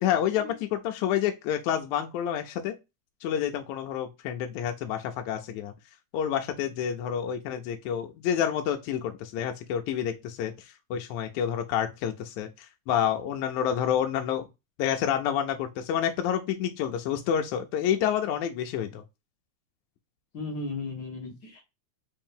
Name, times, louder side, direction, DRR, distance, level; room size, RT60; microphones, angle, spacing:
voice 1, 0.0-2.8 3.2-5.7 6.1-14.5 14.8-19.0, left 9 dB, 80° left, 1.9 m, -29 dB
voice 2, 20.3-21.6, left 3 dB, 50° left, 1.3 m, -36 dB
5.4 x 2.6 x 3.5 m
omnidirectional pair, 3.4 m